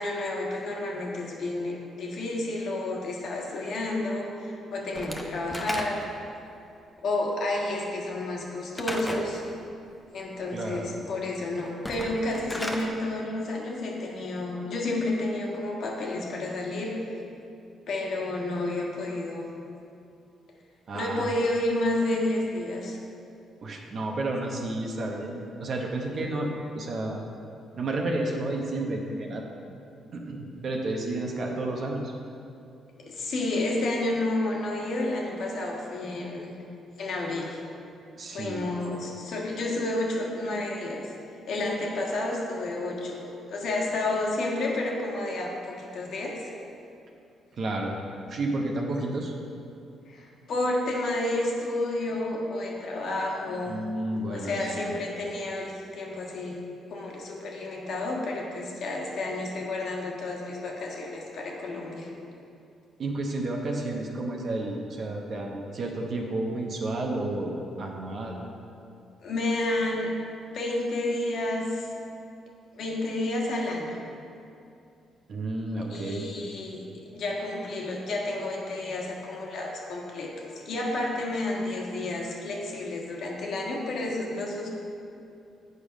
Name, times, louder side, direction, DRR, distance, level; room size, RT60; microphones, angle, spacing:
voice 1, 0.0-6.0 7.0-9.4 10.1-17.1 17.9-19.5 20.9-23.0 33.0-36.5 37.0-37.6 38.3-41.1 41.5-46.5 50.1-53.8 54.3-56.6 56.9-62.1 69.2-70.1 70.5-71.9 72.7-74.0 75.9-84.7, left 2 dB, 65° left, -2 dB, 1.4 m, -30 dB
Slam / Wood, 5.0-6.3 8.8-9.3 11.7-12.9, left 1 dB, 10° left, 0.8 m, -34 dB
voice 2, 10.5-10.9 20.9-21.3 23.6-27.2 27.8-29.5 30.1-32.1 38.2-38.6 47.6-47.9 48.3-49.3 53.7-55.0 63.0-68.4 75.3-76.3, right 2 dB, 55° right, 0 dB, 1.0 m, -31 dB
8.1 x 5.2 x 5.2 m, 2.7 s
cardioid pair, 90°, 0 cm